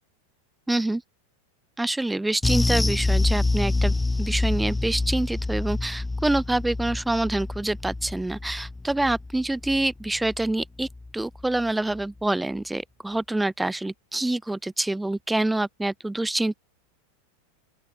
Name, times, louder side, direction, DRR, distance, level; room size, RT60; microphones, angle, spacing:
voice 1, 0.7-1.0 1.8-10.9 11.1-16.6, right 2 dB, 5° right, 0.8 m, -26 dB
sound 1, 2.4-11.1 11.4-11.6 12.0-12.1, left 2 dB, 10° left, 1.9 m, -27 dB
open air
hypercardioid pair, 100°, 0 cm